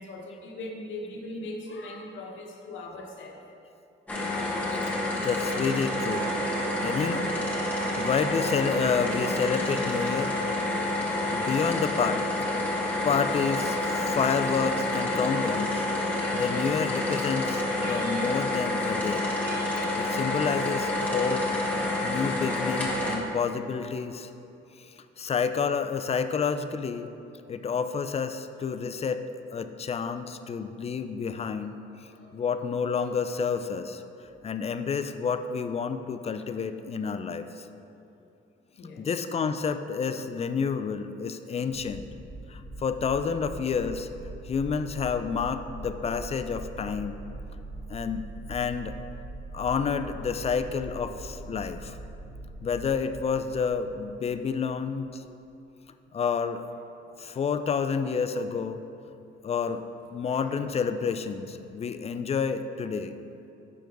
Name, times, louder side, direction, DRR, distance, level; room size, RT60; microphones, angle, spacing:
voice 1, 0.0-3.4 7.9-8.0 23.9-24.1 32.0-32.4 38.7-39.1 60.3-60.6, left 1 dB, 75° left, 1 dB, 1.0 m, -40 dB
sound 1, 4.1-23.2, left 1 dB, 5° left, 1.2 m, -28 dB
voice 2, 5.2-6.3 6.8-10.3 11.3-12.5 13.0-15.8 16.3-19.2 20.0-21.5 22.0-24.3 24.8-27.1 27.5-29.2 29.5-34.0 34.4-37.7 39.0-42.0 42.5-44.1 44.4-47.2 47.9-49.0 49.5-52.0 52.6-55.2 56.1-56.6 57.2-58.8 59.4-59.8 60.1-63.1, left 6 dB, 30° left, 10 dB, 0.4 m, -29 dB
sound 2, 16.1-16.8 17.8-18.4 19.4-20.1, right 3 dB, 50° right, 1.2 m, -44 dB
sound 3, 41.7-54.7, right 2 dB, 50° left, 1.1 m, -42 dB
6.1 x 4.7 x 5.2 m, 2.8 s
cardioid pair, 90°, 20 cm